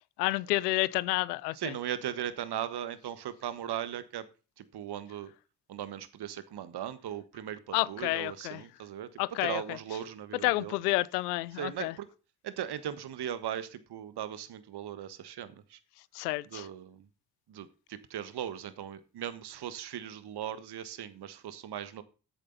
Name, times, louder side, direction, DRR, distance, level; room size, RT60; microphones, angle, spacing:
voice 1, 0.2-1.7 7.7-8.6 9.2-9.8 10.4-11.9 16.1-16.7, left 20 dB, 85° left, 0.6 m, -30 dB
voice 2, 1.5-4.2 4.6-5.3 5.7-10.7 11.6-12.1 12.4-15.8 16.5-17.0 17.5-22.0, right 10 dB, 55° right, 1.4 m, -38 dB
13.0 x 8.6 x 4.0 m
hypercardioid pair, 40°, 46 cm